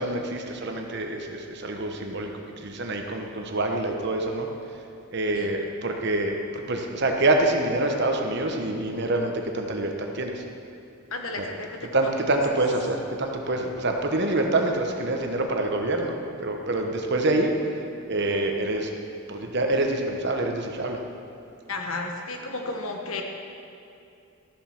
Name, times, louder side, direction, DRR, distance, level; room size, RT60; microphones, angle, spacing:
voice 1, 0.0-2.3 2.6-4.5 5.1-10.4 11.4-11.5 11.9-17.5 18.1-18.9 19.3-21.0, right 2 dB, 50° right, 3 dB, 1.1 m, -26 dB
voice 2, 11.1-12.1 12.5-12.6 21.7-23.2, left 3 dB, 75° left, 2 dB, 1.3 m, -33 dB
13.5 x 7.4 x 5.9 m, 2.6 s
head